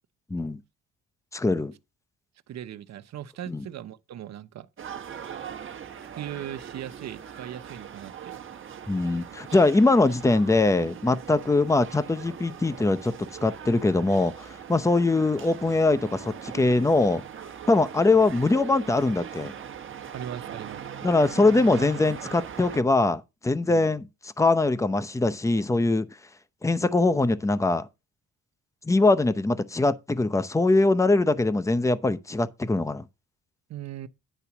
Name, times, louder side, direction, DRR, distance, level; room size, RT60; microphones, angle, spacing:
voice 1, 0.3-0.6 1.3-1.7 3.5-3.7 8.9-17.2 17.7-19.5 21.0-26.1 26.6-27.9 28.8-33.0, left 2 dB, 10° left, 0.7 m, -22 dB
voice 2, 2.5-4.7 5.9-8.4 20.1-20.9 23.7-23.9 33.7-34.1, right 11 dB, 60° right, 0.9 m, -39 dB
sound 1, 4.8-22.8, right 8 dB, 40° right, 1.3 m, -41 dB
10.5 x 4.0 x 6.0 m
cardioid pair, 90°, 30 cm